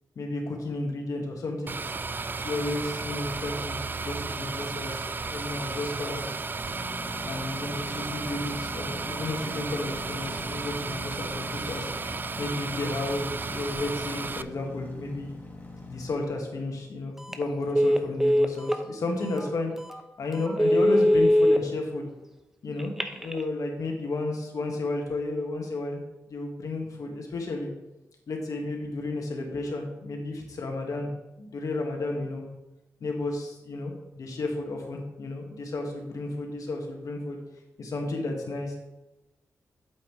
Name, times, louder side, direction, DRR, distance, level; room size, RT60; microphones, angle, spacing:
voice 1, 0.1-1.7 2.4-6.3 7.2-11.9 12.4-15.3 15.8-19.7 20.2-22.1 22.6-27.7 28.3-31.1 31.4-32.4 33.0-37.4 37.8-38.8, left 2 dB, 70° left, 1 dB, 1.8 m, -32 dB
sound 1, 1.7-14.4, right 4 dB, 35° right, 0.4 m, -34 dB
sound 2, 6.6-16.2, left 2 dB, 30° left, 2.2 m, -43 dB
Telephone, 17.2-17.4 17.7-18.8 19.4-19.5 19.9-20.0 20.5-21.6 22.8-23.4, equal, 5° right, 0.8 m, -21 dB
8.5 x 7.6 x 3.2 m, 1.0 s
cardioid pair, 60°, 6 cm